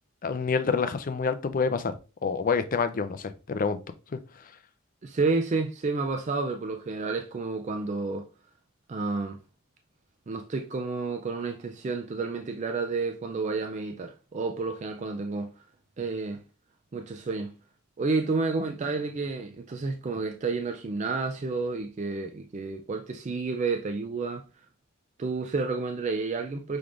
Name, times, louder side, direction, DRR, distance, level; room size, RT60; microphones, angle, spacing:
voice 1, 0.2-1.9 2.2-3.8 4.1-4.5, left 5 dB, 40° left, 0.4 m, -27 dB
voice 2, 5.0-8.3 8.9-9.4 10.3-15.6 16.0-16.4 16.9-17.6 18.0-24.4 25.2-26.8, right 3 dB, 35° right, 0.3 m, -30 dB
5.9 x 3.5 x 2.5 m
head